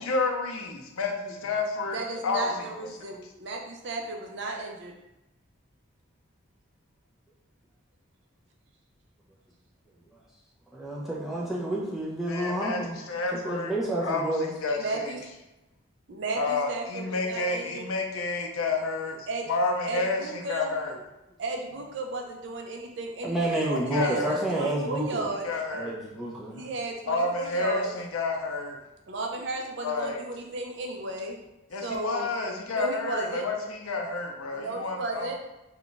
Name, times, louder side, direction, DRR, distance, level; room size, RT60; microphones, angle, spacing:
voice 1, 0.0-2.5 12.3-13.7 14.0-15.1 16.3-19.2 19.5-21.0 23.9-24.4 25.4-25.9 27.1-28.8 29.8-30.2 31.7-35.3, left 3 dB, 80° left, 2 dB, 0.5 m, -30 dB
voice 2, 1.9-4.9 14.8-15.2 16.1-17.8 19.3-19.5 19.8-20.7 21.4-25.4 26.6-27.9 29.1-31.4 31.8-32.3 32.7-33.5 34.5-35.3, right 2 dB, 55° right, 1 dB, 0.4 m, -34 dB
voice 3, 10.7-13.0 13.3-14.5 23.2-25.3 25.7-26.7, right 1 dB, ahead, -5 dB, 0.5 m, -29 dB
2.4 x 2.2 x 3.7 m, 0.96 s
head